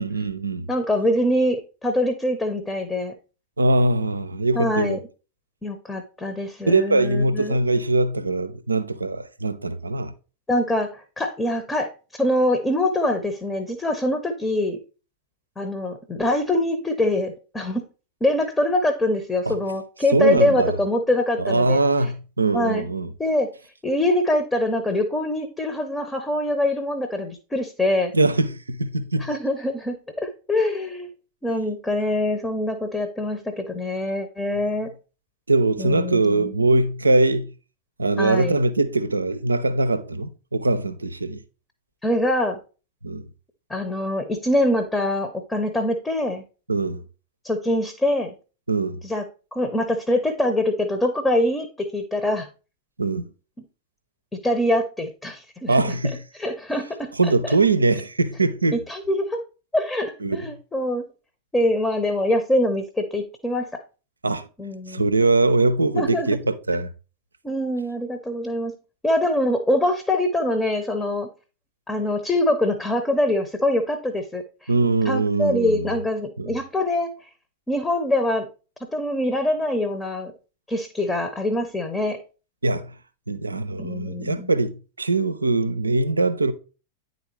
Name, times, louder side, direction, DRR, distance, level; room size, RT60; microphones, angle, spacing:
voice 1, 0.0-0.7 3.6-5.0 6.7-10.1 19.5-19.6 20.1-20.8 21.4-23.1 28.1-29.3 35.5-37.5 38.0-41.4 43.0-43.3 46.7-47.0 48.7-49.0 53.0-53.3 55.7-56.2 57.1-58.8 60.2-60.5 64.2-64.5 64.9-66.9 74.7-76.0 76.4-76.5 82.6-82.9 83.3-86.5, right 2 dB, 80° right, 0.5 m, -22 dB
voice 2, 0.7-3.1 4.5-5.0 5.6-7.6 10.5-14.8 15.6-17.8 18.2-21.8 22.5-22.9 23.2-23.5 23.8-28.1 29.2-31.1 31.4-34.9 35.8-36.5 38.2-38.6 42.0-42.6 43.7-46.4 47.4-48.3 49.0-49.2 49.5-52.5 54.4-55.8 56.4-57.1 58.7-59.4 59.7-61.1 61.5-63.8 64.6-65.0 65.9-66.3 67.4-68.7 69.0-71.3 71.9-74.7 75.1-77.3 77.7-78.5 78.8-80.3 80.7-82.2 83.8-84.5, left 1 dB, 10° left, 0.8 m, -24 dB
9.5 x 4.0 x 3.2 m
figure-of-eight pair, 90°, 0 cm